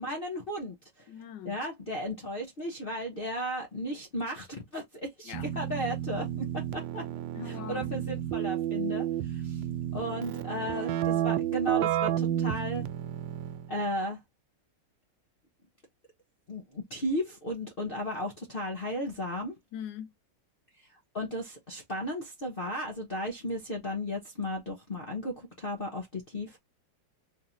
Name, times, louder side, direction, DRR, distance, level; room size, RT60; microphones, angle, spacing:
voice 1, 0.0-1.1 1.4-4.5 4.7-7.1 7.4-9.6 9.9-12.8 13.7-14.2 16.5-19.6 20.8-26.6, equal, 35° left, 1.1 m, -35 dB
voice 2, 1.1-1.6 5.2-5.5 7.3-7.9 19.7-20.1, left 9 dB, 75° left, 1.3 m, -41 dB
Keyboard (musical), 5.3-13.8, right 11 dB, 85° right, 1.3 m, -31 dB
3.6 x 3.4 x 2.7 m
omnidirectional pair, 2.0 m